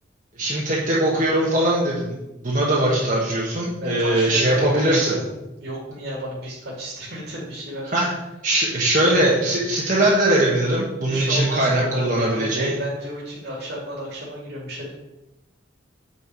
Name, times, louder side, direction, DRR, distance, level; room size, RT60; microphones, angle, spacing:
voice 1, 0.4-5.1 7.9-8.1 8.4-12.7, right 1 dB, 45° right, -5 dB, 1.3 m, -21 dB
voice 2, 3.8-5.3 5.6-7.9 11.1-14.9, equal, 65° right, -5 dB, 2.3 m, -32 dB
8.6 x 4.5 x 4.6 m, 0.98 s
head